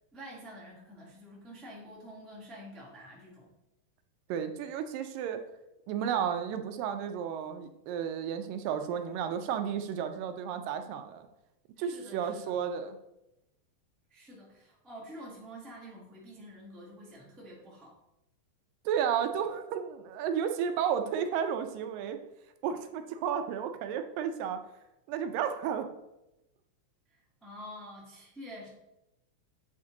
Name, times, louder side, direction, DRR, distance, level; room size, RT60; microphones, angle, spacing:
voice 1, 0.1-3.5 10.1-10.3 11.8-12.6 14.1-18.0 27.1-28.7, equal, ahead, -5 dB, 0.5 m, -48 dB
voice 2, 4.3-5.4 5.9-11.3 11.8-13.0 18.9-22.2 22.6-24.7 25.1-25.9, right 8 dB, 80° right, 8 dB, 2.2 m, -32 dB
8.6 x 4.4 x 3.7 m, 0.89 s
omnidirectional pair, 4.0 m